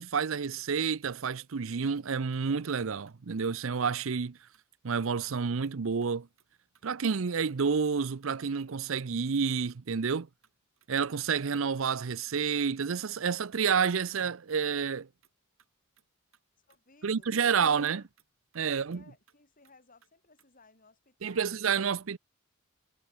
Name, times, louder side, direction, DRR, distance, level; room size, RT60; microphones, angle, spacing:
voice 1, 0.0-4.4 4.8-6.3 6.8-10.3 10.9-15.1 17.0-18.0 18.5-19.0 21.2-22.2, right 6 dB, 70° right, 0.6 m, -29 dB
sound 1, 1.9-2.1 2.3-2.4 2.7-2.8 3.1-3.2 3.4-3.5 3.8-4.3 4.5-5.0 5.3-5.7 6.0-6.1 6.4-6.5 6.7-7.2 7.5-9.4 9.7-10.2 10.4-11.3 11.5-11.6 11.9-13.1 13.4-14.6 14.9-15.0 15.2-15.3 15.6-16.1 16.3-16.8 17.1-17.2 17.4-17.5 17.8-17.9 18.2-19.0 19.3-19.4 19.6-19.8 20.0-20.1 20.4-20.6, right 8 dB, 85° right, 5.6 m, -67 dB
voice 2, 16.6-18.1 18.5-22.0, left 3 dB, 40° left, 6.7 m, -61 dB
head